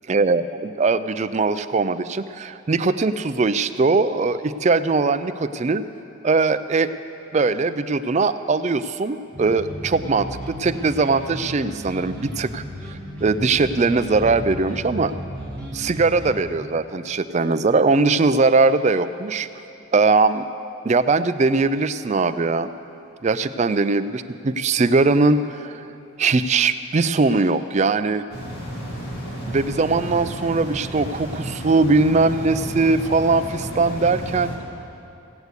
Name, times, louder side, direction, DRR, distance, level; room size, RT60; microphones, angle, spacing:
voice 1, 0.1-5.8 6.2-6.9 7.3-15.1 15.7-19.5 19.9-20.5 20.8-22.7 23.2-25.9 26.2-28.2 29.5-34.5, right 3 dB, 30° right, 11 dB, 0.4 m, -20 dB
sound 1, 9.3-16.4, equal, 5° left, 1.7 m, -34 dB
sound 2, 28.3-34.6, equal, 45° left, 2.7 m, -32 dB
16.5 x 8.1 x 8.1 m, 2.8 s
head